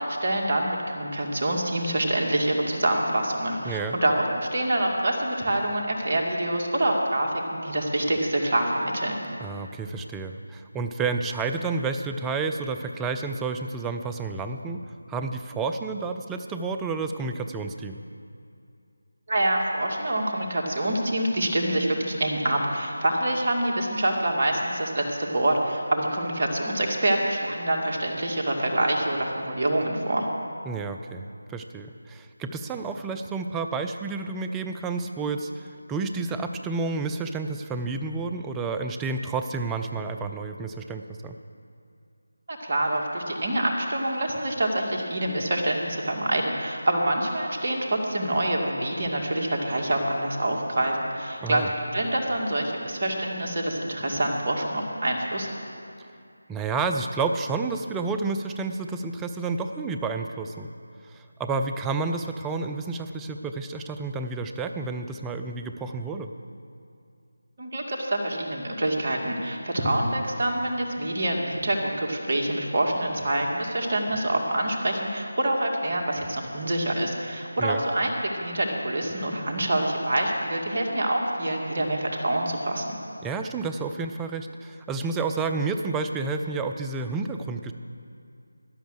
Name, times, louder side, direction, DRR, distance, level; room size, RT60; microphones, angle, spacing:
voice 1, 0.0-9.2 19.3-30.3 42.5-55.5 67.6-83.0, right 1 dB, 40° right, 0 dB, 2.3 m, -26 dB
voice 2, 3.6-4.0 9.4-14.8 15.1-18.0 30.7-41.4 51.4-51.7 56.5-60.7 61.1-66.3 77.6-77.8 83.2-87.7, right 4 dB, 10° right, 6 dB, 0.4 m, -30 dB
13.0 x 10.0 x 6.6 m, 2.5 s
figure-of-eight pair, 160°, 0 cm